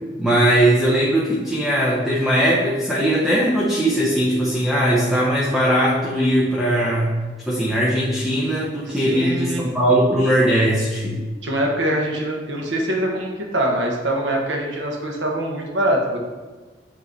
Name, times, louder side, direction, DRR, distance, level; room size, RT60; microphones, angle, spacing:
voice 1, 0.2-7.1 7.5-11.2, right 1 dB, ahead, -6 dB, 0.7 m, -19 dB
voice 2, 8.9-9.6 11.4-16.2, right 1 dB, 75° right, 0 dB, 1.2 m, -23 dB
8.2 x 3.1 x 4.0 m, 1.3 s
head